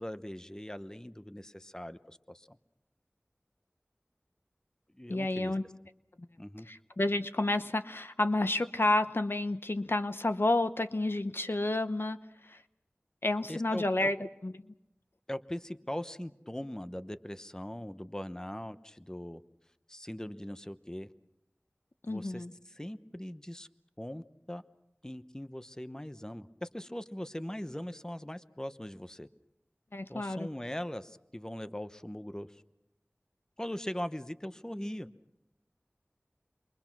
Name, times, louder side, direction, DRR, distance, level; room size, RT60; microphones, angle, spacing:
voice 1, 0.0-2.6 5.0-5.5 6.4-6.7 13.5-14.1 15.3-19.4 19.9-21.1 22.1-23.7 24.0-24.6 25.0-29.3 30.1-32.6 33.6-35.1, left 1 dB, 15° left, 11 dB, 0.9 m, -40 dB
voice 2, 5.1-5.6 6.2-6.3 6.7-12.6 13.2-14.2 14.4-14.7 22.0-22.5 29.9-30.5, left 2 dB, 60° left, 10 dB, 0.9 m, -30 dB
29.0 x 23.0 x 6.1 m, 0.87 s
wide cardioid pair, 45°, 4 cm